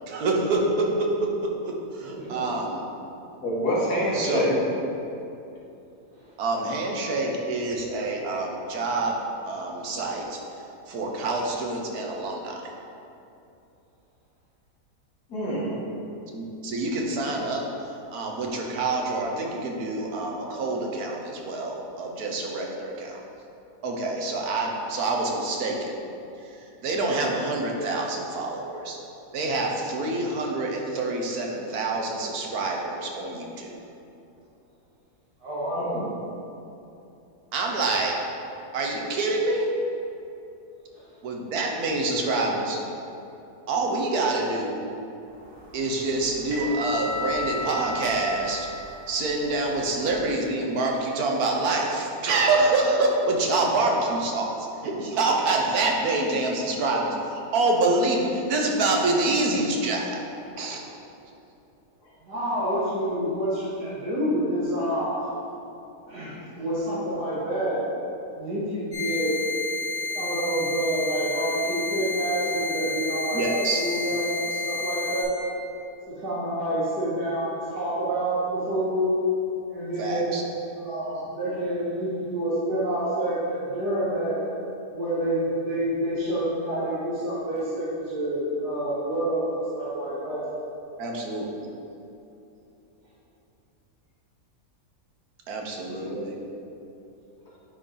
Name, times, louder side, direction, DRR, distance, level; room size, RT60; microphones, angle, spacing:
voice 1, 0.0-2.9 4.1-4.6 6.4-9.2 9.4-12.7 16.3-23.2 23.8-25.9 26.4-29.0 29.3-33.8 37.5-38.2 38.7-39.7 41.2-42.8 43.7-44.8 45.7-48.7 49.1-60.2 60.6-60.8 73.3-73.8 80.0-80.4 91.0-91.7 95.5-96.4, right 2 dB, 75° right, 0 dB, 1.3 m, -26 dB
voice 2, 3.4-4.5 15.3-15.8 35.7-36.1 95.9-96.3, equal, 75° left, -6 dB, 2.0 m, -27 dB
voice 3, 35.4-35.9 40.9-41.0 62.2-65.2 66.1-67.8 68.4-69.3 70.1-73.4 73.7-75.3 76.1-79.1 79.7-80.4 80.8-84.4 84.9-90.5, right 1 dB, 90° right, -10 dB, 1.9 m, -28 dB
sound 1, 45.4-50.2, left 2 dB, 35° right, 1.6 m, -35 dB
sound 2, 68.9-75.2, left 4 dB, 50° left, 2.1 m, -30 dB
9.6 x 4.3 x 3.8 m, 2.8 s
omnidirectional pair, 1.7 m